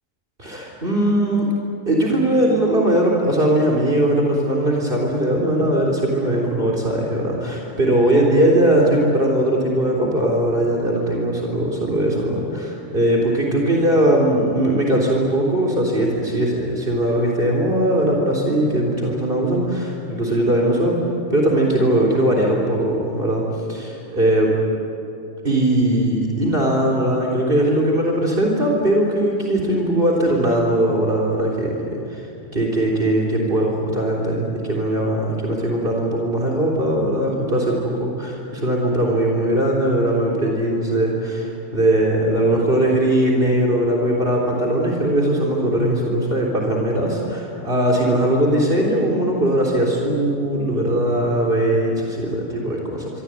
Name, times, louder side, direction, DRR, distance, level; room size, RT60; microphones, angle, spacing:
voice 1, 0.4-1.6 1.9-21.0 21.3-23.4 23.7-24.5 25.4-32.3 32.5-53.1, right 1 dB, 50° right, -1 dB, 4.0 m, -20 dB
26.0 x 24.5 x 9.1 m, 2.7 s
omnidirectional pair, 1.2 m